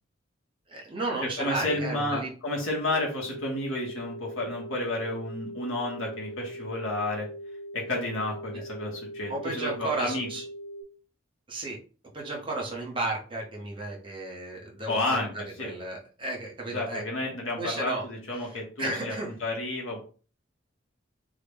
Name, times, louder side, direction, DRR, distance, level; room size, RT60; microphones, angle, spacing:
voice 1, 0.7-2.3 8.5-8.6 9.3-10.5 11.5-11.8 12.1-15.2 15.6-17.0 17.6-18.1 18.4-19.3, right 2 dB, 25° right, -2 dB, 1.0 m, -33 dB
voice 2, 1.4-7.3 7.7-10.3 14.9-15.3 15.6-15.7 16.7-19.1 19.4-20.0, left 2 dB, 85° left, -2 dB, 1.1 m, -31 dB
sound 1, 2.9-10.8, equal, 75° right, 0.9 m, -41 dB
3.7 x 2.2 x 3.4 m, 0.38 s
head